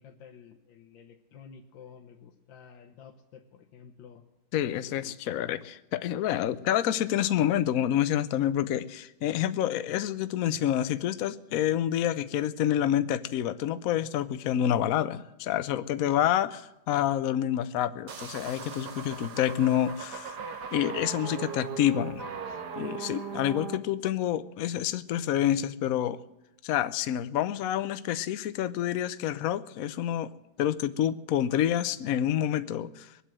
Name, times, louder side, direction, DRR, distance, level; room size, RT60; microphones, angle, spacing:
voice 1, 0.0-4.2 4.8-5.7 16.0-16.2, left 7 dB, 90° left, 4 dB, 1.7 m, -51 dB
voice 2, 4.5-20.4 20.7-22.2 22.8-26.2 26.6-30.3 30.6-33.1, left 11 dB, 65° left, 13 dB, 0.9 m, -28 dB
sound 1, 18.1-23.8, right 6 dB, 65° right, 1.6 m, -38 dB
22.0 x 8.3 x 7.6 m, 0.94 s
omnidirectional pair, 2.0 m